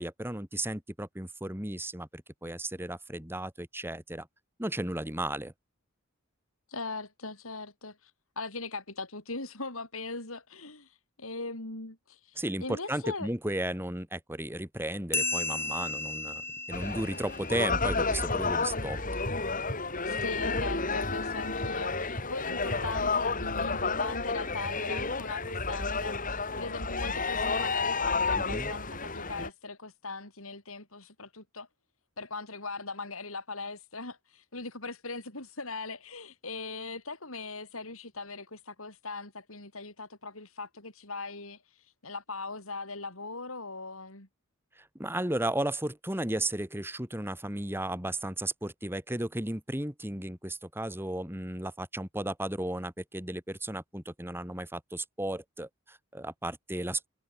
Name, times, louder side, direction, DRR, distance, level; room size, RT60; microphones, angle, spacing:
voice 1, 0.0-4.3 4.6-5.5 12.4-16.4 16.7-19.0 28.3-28.7 44.8-57.1, right 1 dB, 10° right, 3.2 m, -34 dB
voice 2, 6.7-8.1 8.4-10.9 11.2-13.3 20.0-31.7 32.2-41.6 42.0-44.3, left 3 dB, 80° left, 7.6 m, -40 dB
sound 1, 15.1-18.2, left 3 dB, 10° left, 6.3 m, -34 dB
sound 2, 16.7-29.5, left 4 dB, 40° left, 7.5 m, -31 dB
head